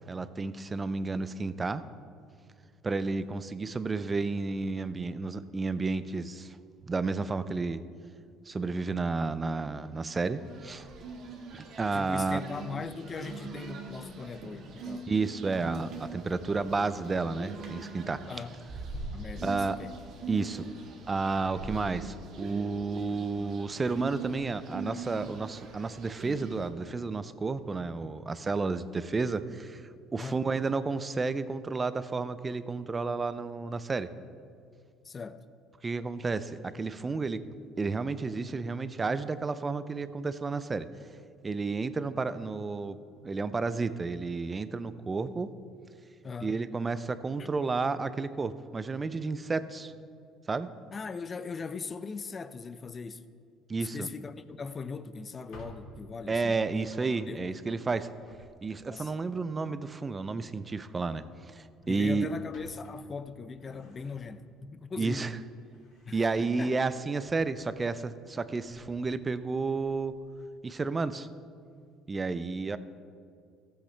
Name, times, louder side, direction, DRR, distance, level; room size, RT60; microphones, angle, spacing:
voice 1, 0.1-1.8 2.8-6.6 6.9-7.8 8.5-10.9 11.5-12.4 15.1-18.2 19.4-19.8 20.3-20.7 21.1-29.8 30.1-34.1 35.8-37.4 37.8-40.9 41.4-43.0 43.2-45.5 46.4-49.9 50.5-50.7 53.7-54.1 56.3-58.1 58.6-61.3 61.5-62.3 65.0-65.3 66.1-70.1 70.6-71.3 72.1-72.8, right 4 dB, 25° right, 0.5 m, -31 dB
sound 1, 10.2-26.7, right 3 dB, 60° right, 1.5 m, -42 dB
voice 2, 11.9-15.1 18.3-18.6 19.1-19.9 30.2-30.4 35.0-35.4 46.2-46.6 47.4-47.5 50.9-53.2 53.8-56.8 57.3-57.5 58.9-59.1 61.9-65.3 66.1-66.7 72.7-72.8, left 4 dB, 30° left, 0.5 m, -40 dB
Drawer open or close, 55.3-59.0 60.4-60.7 61.1-61.2 61.7-64.6 65.1-67.8 68.2-70.2, equal, 75° left, 2.7 m, -55 dB
14.5 x 7.9 x 3.4 m
supercardioid pair, 100°, 0 cm